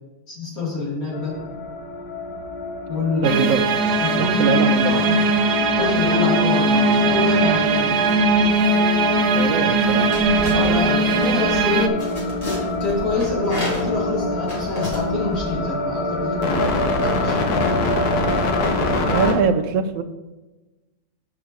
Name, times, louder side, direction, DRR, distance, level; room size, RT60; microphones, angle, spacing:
voice 1, 0.3-1.4 2.9-3.4 4.0-5.1 5.8-8.0 10.4-12.0 12.8-17.4, left 3 dB, 70° left, -5 dB, 3.3 m, -26 dB
sound 1, 1.1-19.3, left 2 dB, 85° left, 1.5 m, -25 dB
voice 2, 3.2-3.6 4.1-5.0 9.3-10.2 19.1-20.0, right 6 dB, 70° right, 9 dB, 1.1 m, -23 dB
sound 2, 3.2-11.9, right 2 dB, 85° right, 1.2 m, -19 dB
sound 3, 10.1-15.6, left 1 dB, 25° left, 2.3 m, -32 dB
6.0 x 5.8 x 6.3 m, 1.1 s
omnidirectional pair, 1.6 m